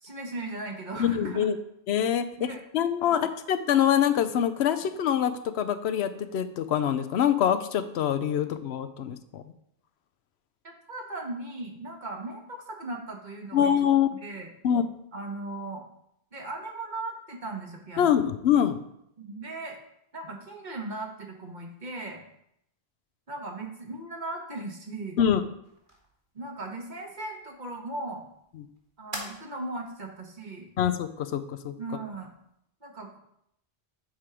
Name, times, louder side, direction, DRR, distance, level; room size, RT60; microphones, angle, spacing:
voice 1, 0.0-1.5 2.4-2.6 3.0-3.3 10.6-13.7 14.1-14.5 15.1-15.8 16.3-18.2 19.2-19.8 20.1-22.2 23.3-25.2 26.3-28.3 29.0-30.7 31.8-32.3 32.8-33.2, right 2 dB, 50° right, 2 dB, 1.2 m, -38 dB
voice 2, 1.0-1.5 1.9-2.5 2.7-9.4 13.5-14.1 14.6-14.8 18.0-18.8 25.2-25.4 30.8-31.7, left 9 dB, 80° left, 11 dB, 0.9 m, -25 dB
sound 1, 25.6-32.6, right 1 dB, 30° right, 1.6 m, -48 dB
7.4 x 4.5 x 4.9 m, 0.75 s
omnidirectional pair, 1.1 m